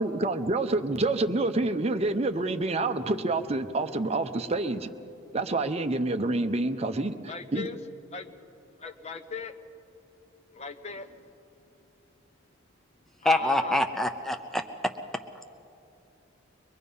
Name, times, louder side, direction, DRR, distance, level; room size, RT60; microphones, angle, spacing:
voice 1, 0.0-4.9 5.3-7.7, right 2 dB, 30° right, 7 dB, 0.7 m, -27 dB
voice 2, 7.3-7.8 8.1-8.3 8.8-9.5 10.5-11.3 13.2-13.8, left 4 dB, 30° left, 8 dB, 0.8 m, -39 dB
voice 3, 13.2-14.9, left 1 dB, ahead, 7 dB, 0.5 m, -26 dB
23.5 x 21.0 x 5.5 m, 2.8 s
head